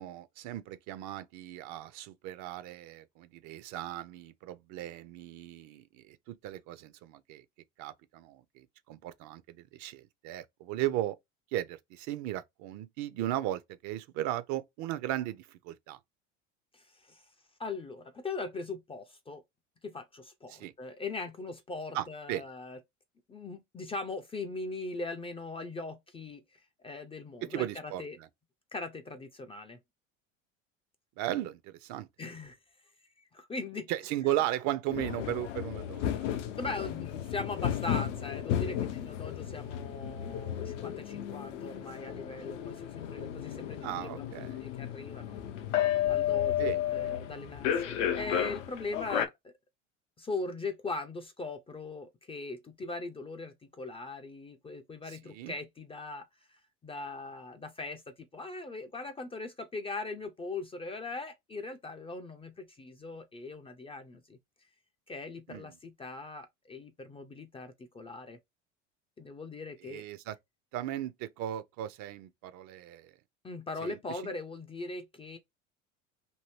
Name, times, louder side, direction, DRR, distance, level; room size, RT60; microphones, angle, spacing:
voice 1, 0.0-7.4 7.8-11.2 11.5-16.0 20.5-20.7 21.9-22.4 27.4-28.3 31.2-32.1 33.9-36.2 43.8-44.6 46.6-47.1 55.1-55.5 65.5-65.7 69.8-70.4 70.7-73.1 73.8-74.2, right 13 dB, 50° right, 0.5 m, -36 dB
voice 2, 16.7-17.2 17.6-19.4 19.8-22.8 23.3-28.2 28.7-29.8 32.2-32.6 33.2-33.9 36.6-45.4 46.1-49.5 50.2-64.4 65.1-68.4 69.2-70.0 73.4-75.4, left 3 dB, 15° left, 0.4 m, -40 dB
sound 1, 34.9-49.3, left 10 dB, 80° left, 0.6 m, -33 dB
2.7 x 2.6 x 3.1 m
hypercardioid pair, 80°, 38 cm